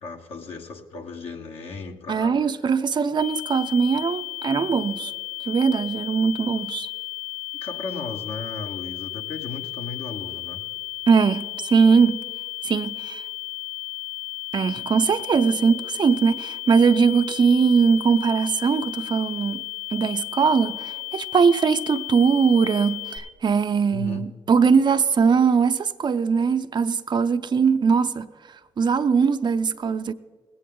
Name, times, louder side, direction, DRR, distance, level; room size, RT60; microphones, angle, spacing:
voice 1, 0.0-2.5 7.6-10.6 23.9-24.2, left 4 dB, 70° left, 1.4 m, -35 dB
voice 2, 2.1-5.1 5.5-6.9 11.1-12.2 12.6-13.2 14.5-19.6 19.9-28.3 28.8-30.1, right 5 dB, 45° right, 0.6 m, -21 dB
sound 1, 3.2-23.2, left 18 dB, 90° left, 3.2 m, -34 dB
20.0 x 8.6 x 3.8 m
supercardioid pair, 50°, 10 cm